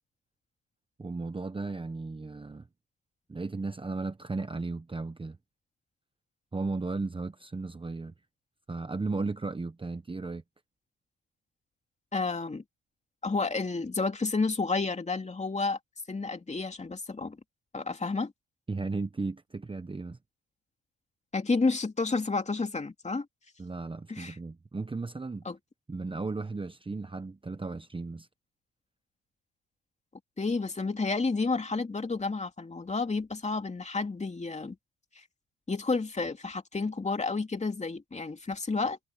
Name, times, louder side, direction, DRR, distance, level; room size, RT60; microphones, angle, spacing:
voice 1, 1.0-2.7 3.3-5.4 6.5-8.1 8.7-10.4 18.7-20.2 23.6-25.4 25.9-28.3, right 3 dB, 15° right, 1.0 m, -35 dB
voice 2, 12.1-12.6 13.2-15.8 16.1-17.4 17.7-18.3 21.3-23.3 24.1-24.4 25.4-25.6 30.4-34.8 35.2-35.3 35.7-39.0, left 3 dB, 25° left, 2.7 m, -30 dB
cardioid pair, 90°, 30 cm